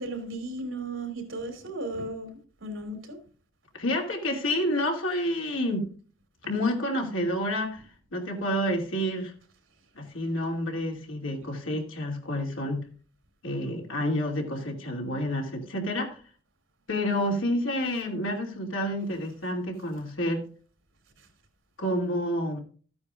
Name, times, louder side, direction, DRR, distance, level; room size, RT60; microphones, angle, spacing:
voice 1, 0.0-2.3 2.6-3.2, right 2 dB, 85° right, 5 dB, 3.0 m, -35 dB
voice 2, 3.7-5.9 6.5-7.8 8.1-9.3 9.9-12.8 13.4-16.2 16.9-20.4 21.8-22.6, equal, 80° left, 1 dB, 2.6 m, -29 dB
14.0 x 9.5 x 2.5 m, 0.41 s
head